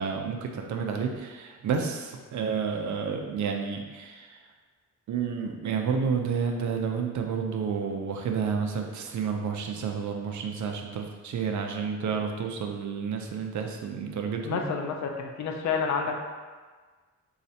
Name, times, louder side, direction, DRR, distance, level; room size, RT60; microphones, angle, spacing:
voice 1, 0.0-4.4 5.1-14.6, right 6 dB, 70° right, 3 dB, 0.5 m, -30 dB
voice 2, 14.4-16.2, left 5 dB, 65° left, 2 dB, 0.5 m, -29 dB
4.1 x 2.4 x 2.7 m, 1.4 s
wide cardioid pair, 110°, 30 cm